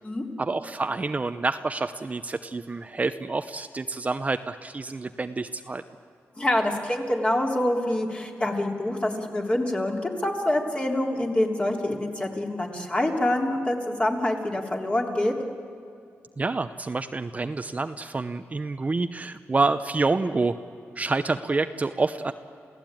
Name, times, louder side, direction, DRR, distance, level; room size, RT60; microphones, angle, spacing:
voice 1, 0.4-5.8 16.4-20.6 21.0-22.3, right 3 dB, 30° right, 9 dB, 0.7 m, -28 dB
voice 2, 6.4-15.3, left 1 dB, 25° left, 0 dB, 3.4 m, -26 dB
28.5 x 16.5 x 9.0 m, 2.5 s
cardioid pair, 95°, 5 cm